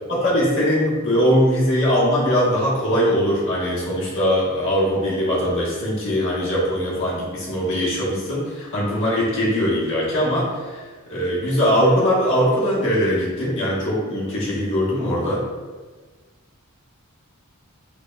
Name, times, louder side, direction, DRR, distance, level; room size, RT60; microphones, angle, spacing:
voice 1, 0.1-10.8 11.1-15.4, equal, 60° left, -7 dB, 1.2 m, -21 dB
4.8 x 2.9 x 2.3 m, 1.3 s
head